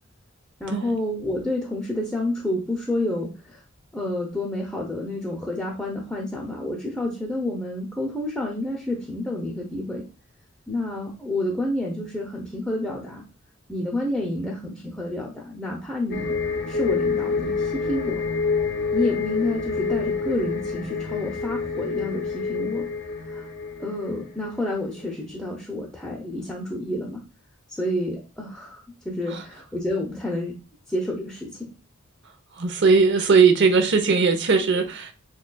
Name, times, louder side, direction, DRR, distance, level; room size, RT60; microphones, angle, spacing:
voice 1, 0.6-3.6 3.9-10.0 10.7-13.2 13.7-16.4 16.7-18.2 18.9-22.9 23.3-23.5 23.8-27.2 27.7-30.5 30.9-31.7, left 1 dB, 5° left, 0.6 m, -29 dB
sound 1, 16.1-24.5 24.8-25.0, left 4 dB, 55° left, 0.5 m, -27 dB
voice 2, 32.6-35.1, right 5 dB, 60° right, 0.6 m, -19 dB
6.3 x 2.3 x 2.3 m
head